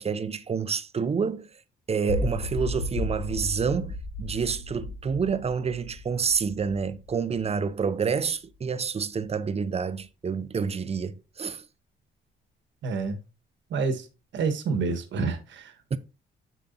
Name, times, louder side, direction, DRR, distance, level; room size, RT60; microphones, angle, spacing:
voice 1, 0.0-1.5 1.9-11.6 15.9-16.0, right 6 dB, 30° right, 0.7 m, -28 dB
sound 1, 2.1-8.2, left 2 dB, 80° left, 1.1 m, -34 dB
voice 2, 12.8-13.2 13.7-14.1 14.3-15.7, right 4 dB, 70° right, 1.4 m, -28 dB
7.3 x 6.9 x 2.7 m
cardioid pair, 90°, 20 cm